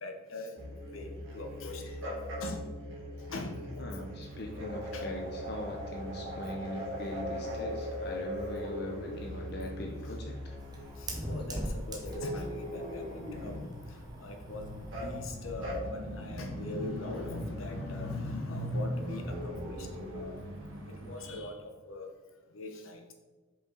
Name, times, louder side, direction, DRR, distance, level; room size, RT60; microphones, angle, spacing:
voice 1, 0.0-0.6 0.8-2.7 3.3-3.6 4.9-5.1 10.1-10.2 11.0-20.4 21.0-22.1 22.5-23.1, left 2 dB, 85° left, 4 dB, 0.9 m, -40 dB
sound 1, 0.6-11.1 12.0-13.7 14.9-15.2 15.6-15.8 16.4-17.8 19.2-20.2, equal, 70° right, 1.8 m, -40 dB
voice 2, 3.8-10.4, left 1 dB, 50° left, 1 dB, 0.6 m, -41 dB
sound 2, 4.2-21.4, equal, 85° right, 1.1 m, -46 dB
Fire, 9.2-15.3, right 1 dB, 20° right, 0.7 m, -43 dB
5.1 x 5.1 x 3.9 m, 1.3 s
head